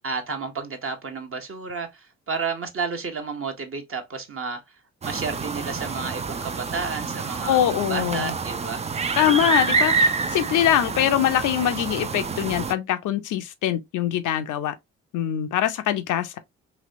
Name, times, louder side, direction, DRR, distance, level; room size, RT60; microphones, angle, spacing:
voice 1, 0.0-4.6 5.0-7.6 7.9-8.8, right 4 dB, 35° right, 1.0 m, -31 dB
sound 1, 5.0-12.7, right 4 dB, 20° right, 0.4 m, -27 dB
voice 2, 7.5-8.3 9.2-14.7 15.1-16.4, left 11 dB, 60° left, 0.6 m, -23 dB
3.1 x 2.8 x 2.6 m
hypercardioid pair, 50°, 35 cm